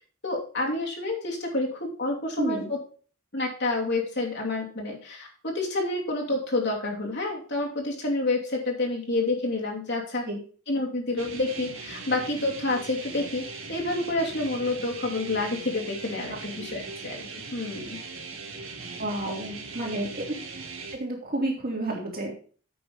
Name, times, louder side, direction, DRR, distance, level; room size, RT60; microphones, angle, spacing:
voice 1, 0.2-2.8 3.3-10.3 10.7-17.2 17.5-18.0, left 2 dB, 55° left, 0 dB, 2.7 m, -29 dB
voice 2, 2.4-2.7 10.2-10.4 16.3-16.4 19.0-20.2 20.9-22.4, right 1 dB, 45° right, -1 dB, 3.3 m, -30 dB
sound 1, 11.2-20.9, right 4 dB, 90° right, 2.4 m, -39 dB
8.7 x 6.1 x 5.3 m, 0.41 s
head